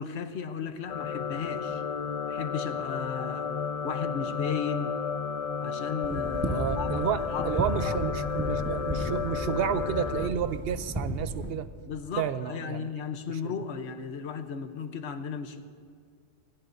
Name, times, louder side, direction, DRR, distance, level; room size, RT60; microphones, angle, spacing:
voice 1, 0.0-1.8 2.3-3.5 3.8-4.9 5.6-8.0 11.9-15.6, left 6 dB, 75° left, 9 dB, 1.1 m, -35 dB
sound 1, 0.9-10.3, left 6 dB, 50° left, 0.5 m, -32 dB
sound 2, 6.0-11.5, right 1 dB, 20° right, 1.4 m, -34 dB
voice 2, 6.4-11.7 12.2-12.9, right 8 dB, 65° right, 12 dB, 0.8 m, -31 dB
25.5 x 17.0 x 2.6 m, 2.1 s
omnidirectional pair, 1.1 m